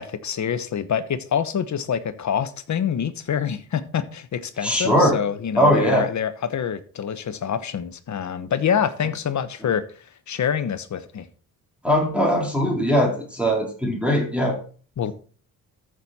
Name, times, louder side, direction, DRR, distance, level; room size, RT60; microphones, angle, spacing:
voice 1, 0.0-9.8 10.3-11.3 15.0-15.1, left 8 dB, 50° left, 1.2 m, -26 dB
voice 2, 4.6-5.2 5.6-6.1 11.8-14.6, equal, 5° right, 3.9 m, -20 dB
14.0 x 6.4 x 4.3 m
cardioid pair, 105°, 36 cm